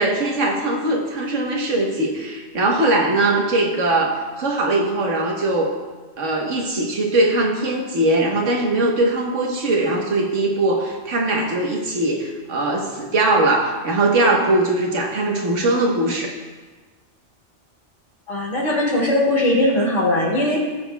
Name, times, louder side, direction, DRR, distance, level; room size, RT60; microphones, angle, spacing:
voice 1, 0.0-5.7 6.2-16.4, right 2 dB, 85° right, 0 dB, 1.5 m, -20 dB
voice 2, 18.3-20.6, left 1 dB, 80° left, -5 dB, 2.8 m, -19 dB
16.5 x 6.1 x 2.3 m, 1.4 s
omnidirectional pair, 1.2 m